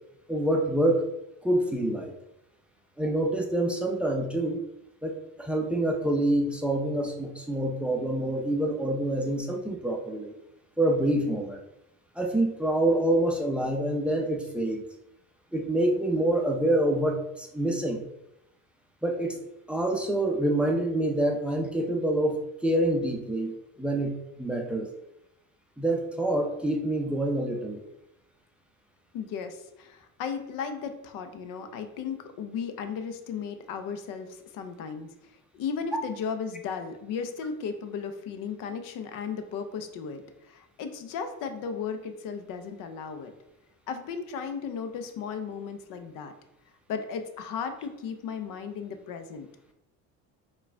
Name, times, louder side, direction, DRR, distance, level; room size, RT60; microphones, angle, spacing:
voice 1, 0.3-1.1 1.4-2.1 3.0-4.6 5.0-10.3 10.8-11.6 12.2-14.8 15.5-18.0 19.0-19.4 19.7-24.9 25.8-27.8, right 1 dB, 5° right, 1 dB, 0.5 m, -26 dB
voice 2, 29.1-43.3 43.9-46.3 46.9-49.5, left 6 dB, 65° left, 8 dB, 0.6 m, -35 dB
4.6 x 2.4 x 3.3 m, 0.88 s
cardioid pair, 105°, 35 cm